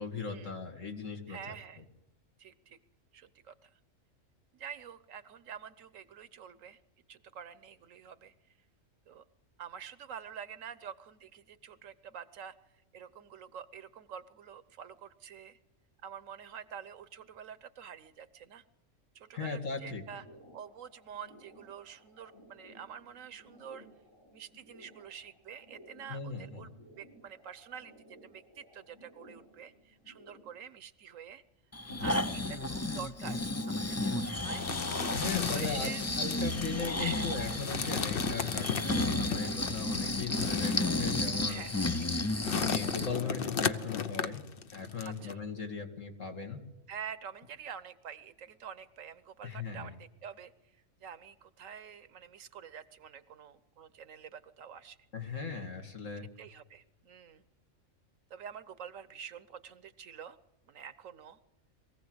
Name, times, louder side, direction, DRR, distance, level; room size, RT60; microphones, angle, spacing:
voice 1, 0.0-1.8 19.3-20.0 26.1-26.7 31.9-32.2 35.1-41.6 42.4-44.4 44.7-46.6 49.4-49.9 55.1-56.3, left 4 dB, 70° left, 4 dB, 2.6 m, -38 dB
voice 2, 1.3-1.8 2.4-2.8 3.1-3.7 4.5-6.8 7.1-8.3 9.1-9.2 9.6-12.6 12.9-15.6 16.0-18.6 19.1-20.2 20.5-23.9 24.3-26.7 27.0-31.4 32.0-34.6 35.3-36.0 37.0-37.3 41.5-42.1 45.1-45.4 46.9-50.5 51.0-55.0 56.4-57.4 58.3-60.4 60.6-61.4, right 8 dB, 75° right, 14 dB, 1.3 m, -47 dB
sound 1, 19.8-30.6, equal, 85° left, 6.9 m, -58 dB
Breathing, 31.7-43.1 43.6-43.7, left 2 dB, 25° left, 0.3 m, -33 dB
sound 2, 34.5-45.3, left 6 dB, 50° left, 0.9 m, -36 dB
22.5 x 15.5 x 7.9 m, 0.99 s
omnidirectional pair, 1.4 m